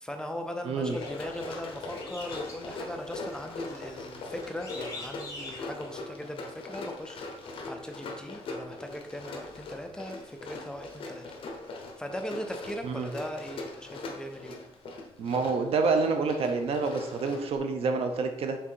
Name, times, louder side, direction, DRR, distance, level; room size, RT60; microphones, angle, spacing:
voice 1, 0.0-11.3 11.7-14.6, equal, 5° left, 4 dB, 0.6 m, -39 dB
voice 2, 0.6-1.0 12.8-13.1 15.2-18.6, right 4 dB, 70° right, 5 dB, 0.8 m, -28 dB
Run, 0.9-17.6, left 3 dB, 55° left, 1.0 m, -41 dB
sound 1, 0.9-5.9, left 2 dB, 30° left, 1.5 m, -46 dB
6.0 x 3.7 x 4.6 m, 0.86 s
cardioid pair, 145°, 11 cm